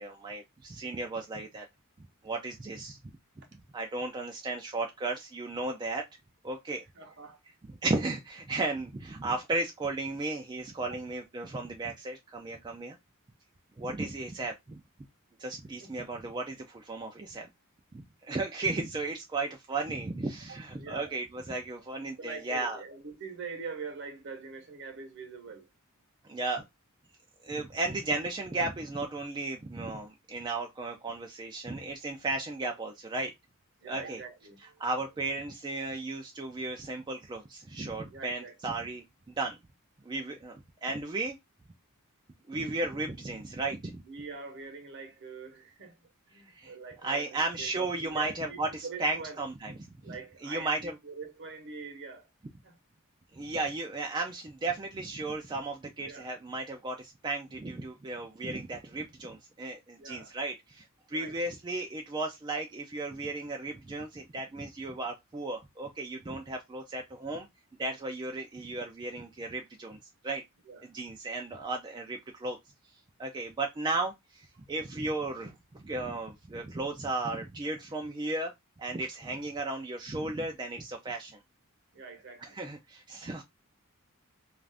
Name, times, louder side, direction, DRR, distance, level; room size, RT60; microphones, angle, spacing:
voice 1, 0.0-1.7 2.2-3.0 3.7-6.0 6.4-6.8 7.8-13.0 13.8-14.8 15.4-17.5 17.9-22.8 26.3-26.6 27.4-33.3 33.9-34.2 34.6-39.6 40.0-41.4 42.5-44.0 46.5-46.7 47.0-49.7 50.1-50.9 53.3-67.5 67.8-70.0 70.2-70.4 70.8-72.6 73.2-78.5 78.8-81.4 82.4-83.4, right 2 dB, 20° right, 0.3 m, -35 dB
voice 2, 6.9-7.4 10.9-11.0 15.8-15.9 20.8-21.2 22.2-25.7 33.8-34.8 38.1-38.6 44.0-49.4 50.0-52.3 52.6-52.7 56.0-56.3 60.0-60.3 61.1-61.4 70.7-70.9 81.9-82.6, right 4 dB, 55° right, 0.8 m, -44 dB
2.5 x 2.4 x 3.2 m
head